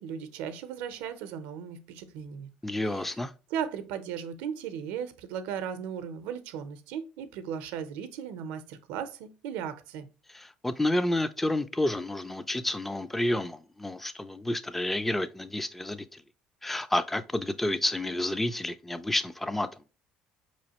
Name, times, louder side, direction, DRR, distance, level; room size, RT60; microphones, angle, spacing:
voice 1, 0.0-2.5 2.9-3.2 3.5-10.1, right 8 dB, 85° right, 0.6 m, -36 dB
voice 2, 2.6-3.3 10.3-16.2 16.6-19.7, left 1 dB, 10° left, 0.3 m, -30 dB
4.8 x 3.1 x 2.8 m
cardioid pair, 110°, 3 cm